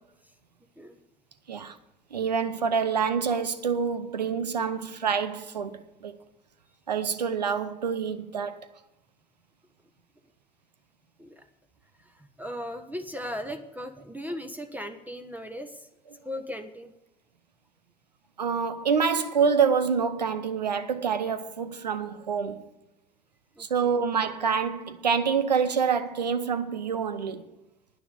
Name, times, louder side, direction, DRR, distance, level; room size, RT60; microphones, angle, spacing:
voice 1, 2.1-6.2 6.9-8.7 18.4-22.7 23.6-27.4, right 6 dB, 85° right, 0.8 m, -27 dB
voice 2, 12.0-15.9 16.2-16.9 23.6-24.0, equal, 10° right, 1.2 m, -38 dB
9.9 x 9.7 x 6.9 m
figure-of-eight pair, 60°, 21 cm